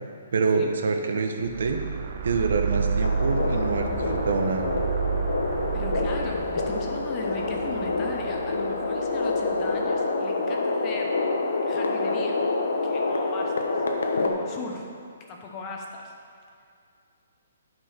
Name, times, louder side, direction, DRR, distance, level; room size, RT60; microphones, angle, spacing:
voice 1, 0.3-1.8 2.2-4.7, right 4 dB, 70° right, 5 dB, 0.9 m, -26 dB
sound 1, 1.4-9.8, right 6 dB, 45° right, 0.5 m, -31 dB
sound 2, 3.0-14.3, left 3 dB, 85° left, 1.0 m, -27 dB
voice 2, 5.7-11.1 11.6-12.4 12.8-13.6 14.1-14.9 15.3-16.1, left 3 dB, 25° left, 1 dB, 0.9 m, -37 dB
9.0 x 4.6 x 5.8 m, 2.4 s
hypercardioid pair, 165°, 0 cm